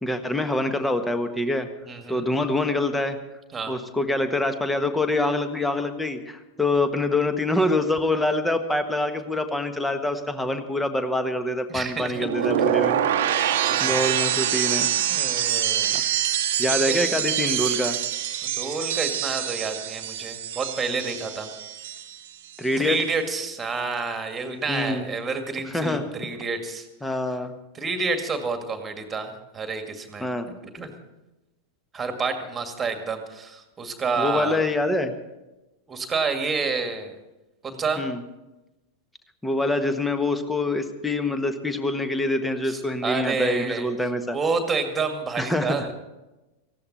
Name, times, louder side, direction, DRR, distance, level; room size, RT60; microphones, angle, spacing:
voice 1, 0.0-1.7 2.1-3.2 3.7-13.0 13.8-14.9 15.9-16.0 16.6-18.0 22.6-23.0 24.7-25.1 25.7-26.1 27.0-27.5 30.2-30.5 34.2-35.1 38.0-38.2 39.4-44.4 45.4-45.9, left 2 dB, 5° left, 9 dB, 1.4 m, -25 dB
voice 2, 1.9-2.3 3.5-3.7 11.7-12.3 13.6-14.0 15.1-16.0 16.7-17.0 18.4-21.5 22.8-26.9 27.7-30.3 30.7-30.9 31.9-34.6 35.9-37.1 37.6-38.0 42.7-43.9 44.3-45.9, right 4 dB, 15° right, 6 dB, 2.1 m, -29 dB
sound 1, 12.1-22.3 22.5-23.0, right 10 dB, 55° right, 1.0 m, -25 dB
18.5 x 15.5 x 4.2 m, 1.0 s
figure-of-eight pair, 90°, 0 cm